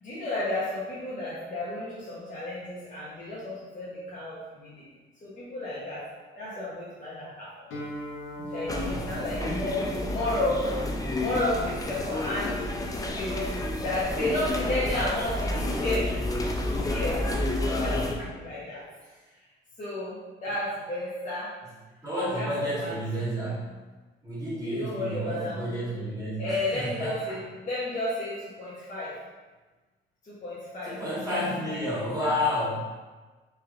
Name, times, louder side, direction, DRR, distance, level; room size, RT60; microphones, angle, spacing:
voice 1, 0.0-4.8 5.2-6.0 6.4-7.5 8.5-9.8 10.1-10.8 11.2-12.7 13.1-16.1 16.6-17.2 17.7-18.9 19.8-21.5 22.3-22.9 24.6-25.6 26.4-29.1 30.3-31.0 31.3-31.9, left 1 dB, 40° left, -9 dB, 0.9 m, -32 dB
Guitar, 7.7-15.5, equal, 85° left, 0.8 m, -43 dB
sound 1, 8.7-18.1, left 1 dB, 20° left, 0.4 m, -30 dB
voice 2, 9.4-10.0 17.6-18.3 19.1-19.2 22.0-23.7 24.2-27.4 30.9-32.8, equal, 15° right, -10 dB, 1.3 m, -31 dB
3.3 x 3.0 x 2.4 m, 1.3 s
cardioid pair, 90°, 20 cm